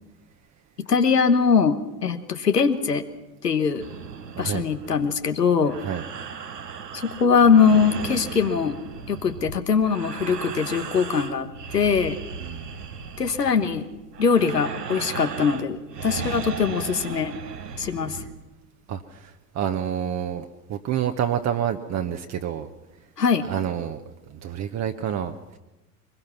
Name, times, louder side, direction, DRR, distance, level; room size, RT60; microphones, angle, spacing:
voice 1, 0.9-3.0 3.4-3.8 4.4-5.8 6.9-8.8 9.1-11.5 11.7-12.2 13.2-13.9 14.2-17.3 17.8-18.2 23.2-23.5, left 6 dB, 90° left, 8 dB, 1.3 m, -21 dB
sound 1, 3.8-18.5, right 6 dB, 85° right, 1.3 m, -36 dB
voice 2, 4.3-4.7 5.7-6.1 12.3-12.8 18.9-22.7 23.4-24.0 24.3-25.6, right 9 dB, 35° right, 5 dB, 1.1 m, -28 dB
24.0 x 21.0 x 5.9 m, 1.0 s
figure-of-eight pair, 75°, 47 cm